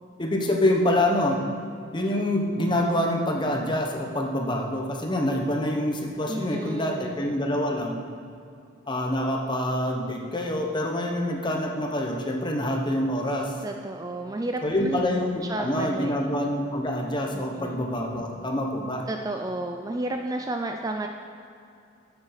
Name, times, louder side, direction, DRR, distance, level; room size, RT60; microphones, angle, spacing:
voice 1, 0.2-1.4 1.9-8.0 8.9-13.5 14.6-19.0, left 1 dB, 25° left, 1 dB, 1.1 m, -26 dB
voice 2, 6.3-7.2 13.6-15.0 15.4-16.3 17.3-17.8 19.1-21.1, right 2 dB, 20° right, 4 dB, 0.4 m, -32 dB
13.0 x 7.1 x 4.0 m, 2.5 s
head